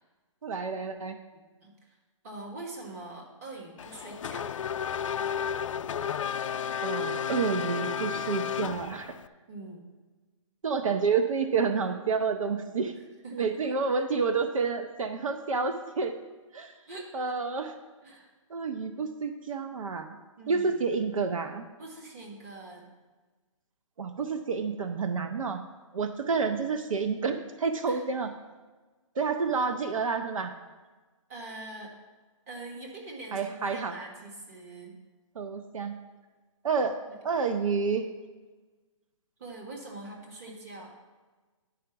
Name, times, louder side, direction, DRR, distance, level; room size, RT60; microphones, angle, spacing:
voice 1, 0.4-1.2 6.8-9.1 10.6-13.0 13.3-16.1 16.5-16.7 17.1-17.7 18.5-20.1 20.5-21.6 24.0-25.6 25.9-28.3 29.2-30.5 33.3-34.0 35.4-35.9 36.6-36.9 37.2-38.1, right 5 dB, 80° right, 7 dB, 0.8 m, -29 dB
voice 2, 1.3-1.7 2.2-4.5 9.5-9.8 13.2-13.4 16.9-17.1 18.0-18.3 20.4-20.7 21.8-22.9 27.9-28.0 31.3-31.9 32.5-34.9 37.1-37.2 39.4-40.9, right 2 dB, 30° right, 0 dB, 1.5 m, -43 dB
Race car auto racing / Accelerating revving vroom, 3.8-9.3, left 8 dB, 75° left, 0.4 m, -32 dB
10.0 x 5.0 x 5.8 m, 1.3 s
hypercardioid pair, 170°, 17 cm